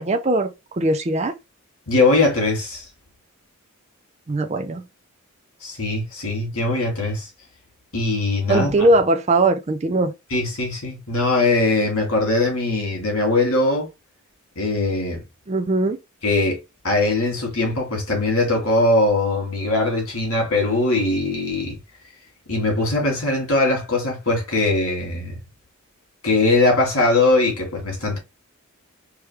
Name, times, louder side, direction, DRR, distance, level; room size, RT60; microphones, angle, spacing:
voice 1, 0.0-1.3 4.3-4.8 8.5-10.1 15.5-16.0, right 2 dB, 30° right, 0.4 m, -20 dB
voice 2, 1.9-2.8 5.6-7.3 7.9-8.7 10.3-13.9 14.6-15.2 16.2-16.6 16.8-21.8 22.5-25.3 26.2-28.2, left 2 dB, 70° left, 2.8 m, -21 dB
4.7 x 3.1 x 3.4 m
head